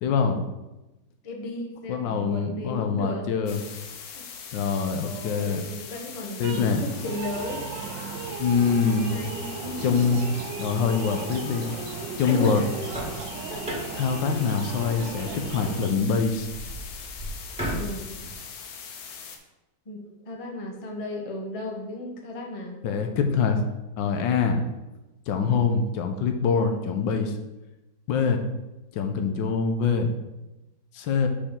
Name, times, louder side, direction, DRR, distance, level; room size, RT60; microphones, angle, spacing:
voice 1, 0.0-0.4 1.9-3.6 4.5-5.6 6.4-6.8 8.4-9.2 9.8-10.2 10.6-11.7 12.2-12.6 13.9-16.5 22.8-23.6 24.0-24.6 25.3-27.3 28.1-28.4 28.9-30.1 30.9-31.3, left 5 dB, 85° left, 5 dB, 1.4 m, -24 dB
voice 2, 1.2-3.3 4.7-7.7 8.8-10.1 12.2-12.7 13.5-13.6 17.7-18.1 19.9-22.8, left 2 dB, 30° left, 1 dB, 0.6 m, -35 dB
sound 1, 3.5-19.4, left 6 dB, 65° left, 1.1 m, -41 dB
sound 2, 6.4-15.9, right 6 dB, 80° right, 1.3 m, -36 dB
sound 3, 12.7-18.3, equal, 5° right, 1.7 m, -37 dB
6.5 x 5.1 x 3.6 m, 1.0 s
omnidirectional pair, 2.0 m